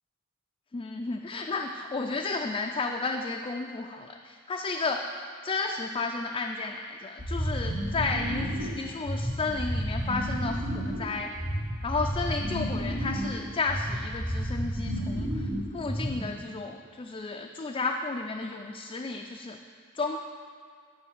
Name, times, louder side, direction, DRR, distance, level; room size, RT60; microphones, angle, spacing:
voice 1, 0.7-5.1 5.4-11.3 11.8-19.6 19.9-20.2, left 3 dB, 25° left, 2 dB, 0.3 m, -32 dB
sound 1, 7.2-16.4, equal, 80° right, 1.9 m, -31 dB
6.7 x 5.7 x 7.2 m, 2.2 s
head